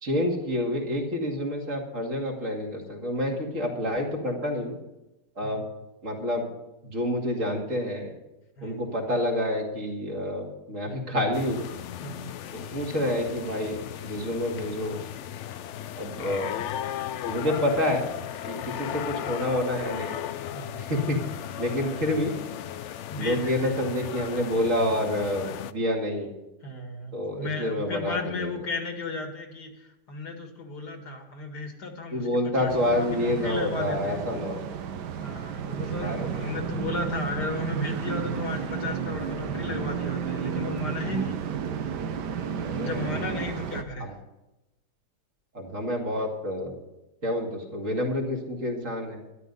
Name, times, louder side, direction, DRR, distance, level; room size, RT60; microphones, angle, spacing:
voice 1, 0.0-4.8 5.4-5.6 6.0-6.5 6.8-8.1 8.6-11.7 12.5-15.0 16.0-16.6 17.3-18.1 18.4-20.2 20.8-21.2 21.6-22.3 23.2-26.3 27.1-28.5 32.1-34.6 36.0-36.6 41.2-41.3 42.6-43.1 44.0-44.1 45.5-46.7 47.2-49.2, left 1 dB, 45° right, -1 dB, 2.7 m, -28 dB
sound 1, 11.3-25.7, left 10 dB, 85° left, 0.6 m, -36 dB
voice 2, 12.0-12.3 20.5-20.9 23.1-23.8 26.6-34.2 35.2-41.4 42.8-44.2, left 3 dB, 70° left, 4 dB, 2.4 m, -34 dB
sound 2, 32.7-43.8, right 7 dB, 75° right, 1.5 m, -32 dB
13.0 x 11.0 x 5.4 m, 0.97 s
omnidirectional pair, 1.8 m